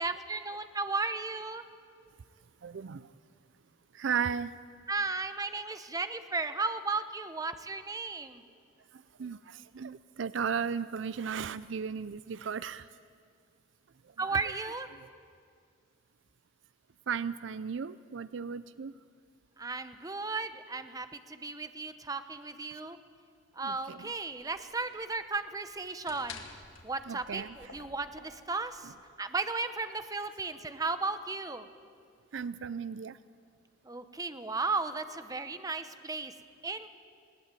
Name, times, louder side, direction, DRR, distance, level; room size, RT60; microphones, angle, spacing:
voice 1, 0.0-1.7 4.9-8.4 14.2-14.9 19.6-23.0 23.6-26.4 26.8-31.7 33.8-36.3 36.6-36.9, right 3 dB, 20° right, 10 dB, 0.8 m, -35 dB
voice 2, 2.6-3.1 3.9-4.5 9.2-12.9 14.2-14.3 17.1-18.9 23.6-24.1 27.1-27.5 32.3-33.2, right 6 dB, 70° right, 16 dB, 0.5 m, -35 dB
sound 1, 23.6-28.9, left 5 dB, 85° left, 1.9 m, -51 dB
20.0 x 18.0 x 9.1 m, 2.2 s
head